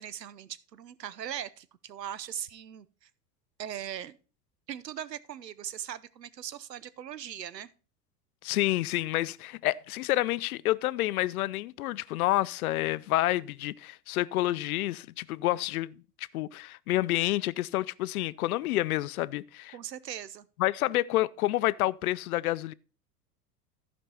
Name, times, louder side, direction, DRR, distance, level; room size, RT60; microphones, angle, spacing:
voice 1, 0.0-3.1 3.6-4.2 4.7-7.7 19.7-20.5, right 10 dB, 80° right, 0.8 m, -40 dB
voice 2, 8.4-19.7 20.6-22.7, left 16 dB, 65° left, 0.5 m, -29 dB
14.0 x 5.3 x 4.2 m
figure-of-eight pair, 80°, 49 cm